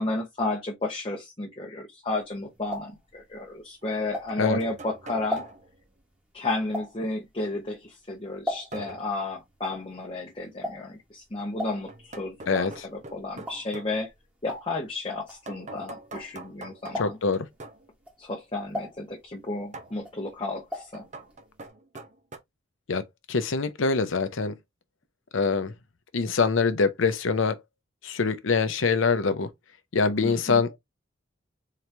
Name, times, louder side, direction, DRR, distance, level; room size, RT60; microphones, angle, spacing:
voice 1, 0.0-5.4 6.3-14.1 14.4-17.2 18.2-21.0 30.2-30.6, left 2 dB, 25° left, 0.9 m, -32 dB
sound 1, 2.2-4.7 5.1-9.0 9.3-16.6 16.9-17.4 17.9-19.6 19.9-21.0 21.3-21.4 21.6-21.7, left 1 dB, 5° right, 1.3 m, -38 dB
sound 2, 2.5-2.6 3.8-5.8 8.7-9.2 11.9-14.0 15.5-17.9 19.7-20.0 20.9-22.4, right 2 dB, 35° right, 0.7 m, -44 dB
voice 2, 17.0-17.5 22.9-23.0 23.3-24.5 25.3-25.7 26.1-27.6 28.0-29.5 29.9-30.8, left 4 dB, 75° left, 0.7 m, -24 dB
3.8 x 3.0 x 3.3 m
head